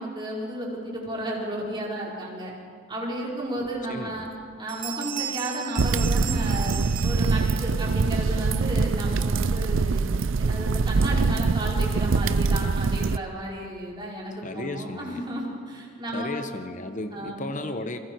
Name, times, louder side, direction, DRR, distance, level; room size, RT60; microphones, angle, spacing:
voice 1, 0.0-2.5 2.9-4.3 4.6-10.1 10.4-16.4 17.1-17.6, right 1 dB, 25° right, -4 dB, 5.1 m, -33 dB
sound 1, 3.6-3.7 4.2-4.4 4.7-7.8, right 11 dB, 45° right, 1.1 m, -36 dB
voice 2, 3.9-4.3 14.4-15.2 16.1-18.0, left 2 dB, 40° left, 7 dB, 1.2 m, -34 dB
sound 2, 5.8-13.2, right 4 dB, 75° right, 0.5 m, -24 dB
29.0 x 23.0 x 4.8 m, 2.2 s
head